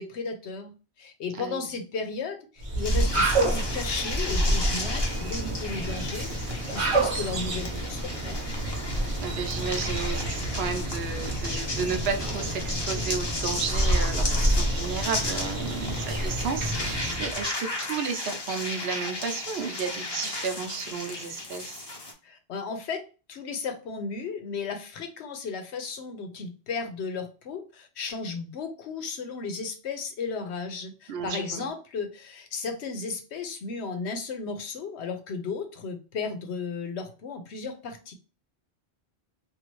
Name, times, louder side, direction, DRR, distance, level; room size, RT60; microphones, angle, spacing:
voice 1, 0.0-8.4 22.2-23.0 23.3-38.1, left 4 dB, 90° left, 6 dB, 1.0 m, -34 dB
sound 1, 2.6-17.5, right 1 dB, 35° right, 0.8 m, -28 dB
sound 2, 2.8-22.1, left 2 dB, 30° left, 0.6 m, -35 dB
voice 2, 9.2-21.9 31.1-31.7, right 5 dB, 70° right, 6 dB, 0.8 m, -33 dB
2.7 x 2.5 x 3.0 m, 0.33 s
omnidirectional pair, 1.1 m